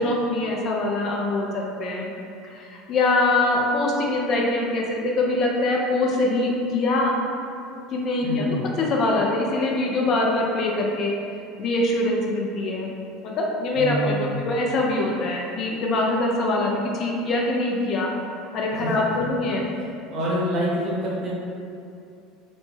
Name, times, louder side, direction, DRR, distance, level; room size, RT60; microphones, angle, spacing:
voice 1, 0.0-2.1 2.4-7.1 7.9-11.1 11.6-12.9 13.2-18.1 18.5-19.7, left 2 dB, 45° left, -1 dB, 0.3 m, -23 dB
voice 2, 8.2-8.7 13.8-14.4 18.7-19.3 20.1-21.3, equal, 45° right, -6 dB, 0.7 m, -27 dB
2.0 x 2.0 x 3.0 m, 2.5 s
figure-of-eight pair, 70°, 0 cm